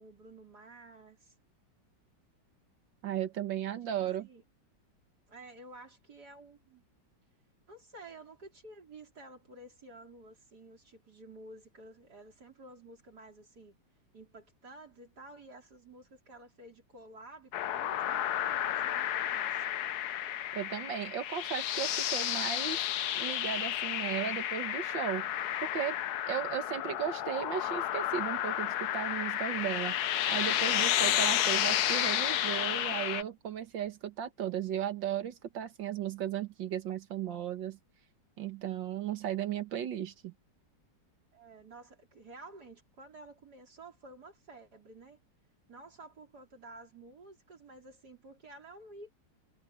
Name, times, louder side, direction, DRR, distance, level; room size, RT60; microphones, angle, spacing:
voice 1, 0.0-1.3 3.8-4.4 5.3-6.8 7.7-13.8 14.1-19.6 41.3-45.2 45.7-49.2, right 2 dB, 60° right, 4.6 m, -52 dB
voice 2, 3.0-4.3 20.5-22.8 23.1-25.3 25.6-26.0 26.3-37.8 38.4-40.3, right 10 dB, 80° right, 1.9 m, -36 dB
sound 1, 17.5-33.2, left 11 dB, 65° left, 1.2 m, -31 dB
omnidirectional pair, 2.0 m